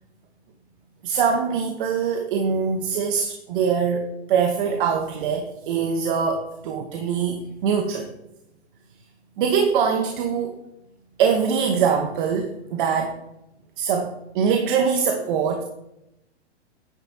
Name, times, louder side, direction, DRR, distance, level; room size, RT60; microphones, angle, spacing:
voice 1, 1.0-8.1 9.4-10.6 11.2-13.2 13.8-14.1 14.3-15.6, right 6 dB, 45° right, 4 dB, 1.1 m, -23 dB
9.3 x 8.9 x 2.8 m, 0.86 s
hypercardioid pair, 140°, 34 cm